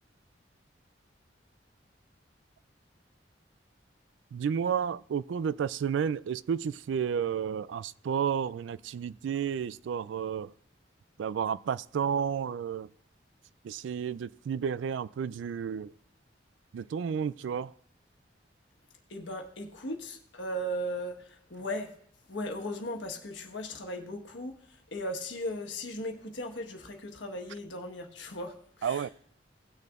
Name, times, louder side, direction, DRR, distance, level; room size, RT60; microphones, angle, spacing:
voice 1, 4.3-10.5 11.2-12.9 13.6-15.9 16.7-17.7 28.8-29.1, right 7 dB, 80° right, 0.3 m, -31 dB
voice 2, 19.1-21.9 22.3-29.1, equal, 80° left, 1.4 m, -37 dB
17.5 x 6.6 x 2.4 m
head